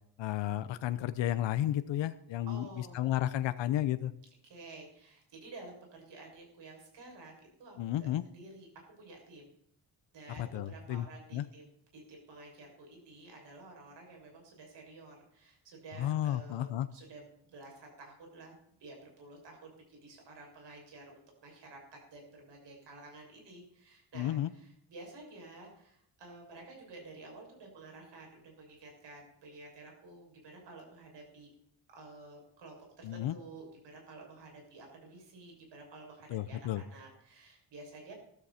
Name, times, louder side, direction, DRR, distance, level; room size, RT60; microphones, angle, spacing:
voice 1, 0.2-4.1 7.8-8.2 10.4-11.1 11.3-11.4 16.0-16.9 24.1-24.5 33.0-33.4 36.3-36.8, left 12 dB, 80° left, 12 dB, 0.8 m, -32 dB
voice 2, 2.5-3.0 4.4-8.1 8.3-8.7 9.0-9.5 10.1-11.6 11.9-18.5 18.8-21.8 22.1-31.5 31.9-38.1, right 2 dB, 70° right, 1 dB, 6.7 m, -51 dB
14.5 x 13.5 x 4.3 m, 0.72 s
wide cardioid pair, 175°, 43 cm